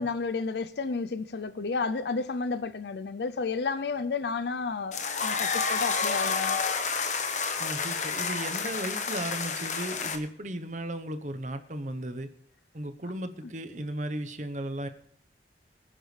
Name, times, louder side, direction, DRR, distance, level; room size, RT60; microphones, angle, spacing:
voice 1, 0.0-6.6, left 4 dB, 70° left, 0.5 m, -32 dB
sound 1, 4.9-10.2, left 5 dB, 45° left, 1.2 m, -29 dB
voice 2, 7.6-12.3 12.7-14.9, right 1 dB, 45° right, 1.0 m, -35 dB
23.0 x 10.0 x 3.3 m
head